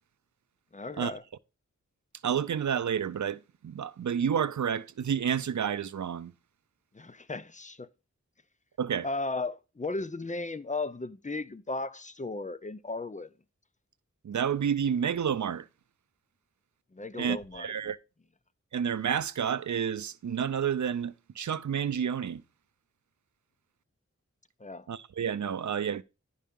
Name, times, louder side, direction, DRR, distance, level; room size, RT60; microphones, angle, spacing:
voice 1, 0.7-1.2 6.9-7.9 9.0-13.3 16.9-17.7 24.6-24.9, left 3 dB, 25° left, 0.5 m, -35 dB
voice 2, 2.2-6.3 8.8-9.1 14.2-15.7 17.2-18.0 18.7-22.4 24.9-26.0, right 8 dB, 75° right, 0.5 m, -30 dB
10.0 x 5.6 x 3.6 m
wide cardioid pair, 55°, 30 cm